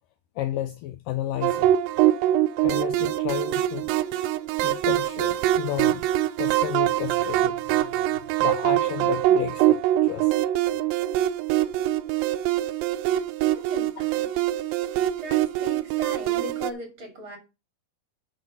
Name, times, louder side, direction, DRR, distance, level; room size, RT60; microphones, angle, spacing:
voice 1, 0.4-1.7 2.6-3.9 4.6-6.0 6.4-8.0 8.4-10.3, left 13 dB, 85° left, 1.9 m, -32 dB
sound 1, 1.4-16.7, right 13 dB, 80° right, 2.1 m, -24 dB
voice 2, 13.7-14.2 15.2-17.4, right 1 dB, 35° right, 3.3 m, -38 dB
9.2 x 6.0 x 5.4 m
omnidirectional pair, 4.6 m